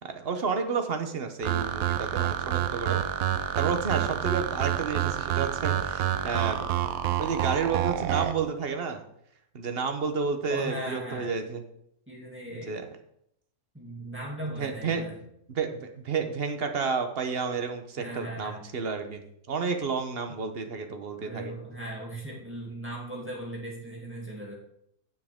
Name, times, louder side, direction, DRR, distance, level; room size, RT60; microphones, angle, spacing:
voice 1, 0.0-3.0 3.6-6.7 7.2-9.0 9.5-11.6 12.7-12.8 14.6-15.0 15.6-19.2 19.5-21.5, right 5 dB, 45° right, 6 dB, 1.0 m, -30 dB
sound 1, 1.4-8.3, right 11 dB, 70° right, 1.0 m, -28 dB
voice 2, 10.5-11.3 12.1-12.8 13.7-15.2 18.0-18.6 21.2-24.5, right 1 dB, 10° right, -4 dB, 2.5 m, -38 dB
9.5 x 7.5 x 3.6 m, 0.74 s
omnidirectional pair, 1.6 m